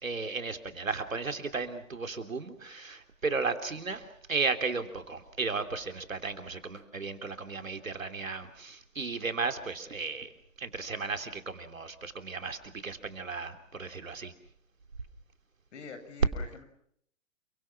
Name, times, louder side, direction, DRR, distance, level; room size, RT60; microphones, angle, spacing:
voice 1, 0.0-10.3 10.6-14.3, right 4 dB, 90° right, 7 dB, 3.3 m, -35 dB
voice 2, 15.7-16.6, left 4 dB, 60° left, 9 dB, 7.4 m, -45 dB
29.5 x 24.0 x 5.9 m, 0.66 s
hypercardioid pair, 130°, 39 cm